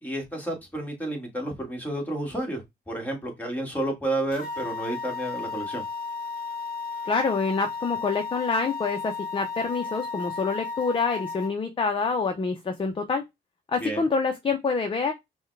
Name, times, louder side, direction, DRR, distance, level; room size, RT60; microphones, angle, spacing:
voice 1, 0.0-5.8 13.8-14.0, right 1 dB, 10° left, 1.9 m, -31 dB
sound 1, 4.3-11.5, left 4 dB, 45° left, 1.4 m, -34 dB
voice 2, 7.0-13.2 13.7-15.1, left 4 dB, 25° left, 0.7 m, -26 dB
5.4 x 2.3 x 3.3 m
cardioid pair, 90°, 20 cm